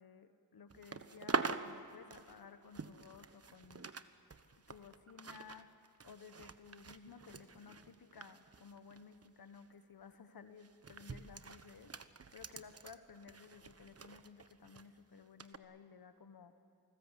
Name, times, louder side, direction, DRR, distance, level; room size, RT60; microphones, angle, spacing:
voice 1, 0.0-3.9 4.7-5.7 6.0-11.9 12.3-16.5, left 5 dB, 75° left, 9 dB, 1.3 m, -56 dB
sound 1, 0.7-4.0 4.3-9.3 9.6-9.8 10.6-14.9 15.4-15.6, right 4 dB, 40° right, 1.2 m, -45 dB
28.5 x 20.0 x 8.4 m, 2.6 s
cardioid pair, 60°, 36 cm